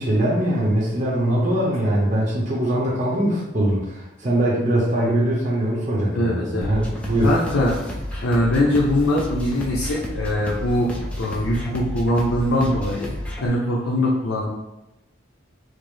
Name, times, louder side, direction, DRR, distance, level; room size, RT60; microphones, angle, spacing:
voice 1, 0.0-7.4, right 1 dB, 35° right, -5 dB, 0.7 m, -22 dB
voice 2, 6.1-6.7 7.2-7.7 8.2-10.9 11.2-13.1 13.4-14.4, left 1 dB, 85° left, -4 dB, 0.7 m, -22 dB
sound 1, 6.6-13.5, left 1 dB, 5° left, 0.5 m, -31 dB
5.0 x 2.0 x 3.1 m, 0.96 s
head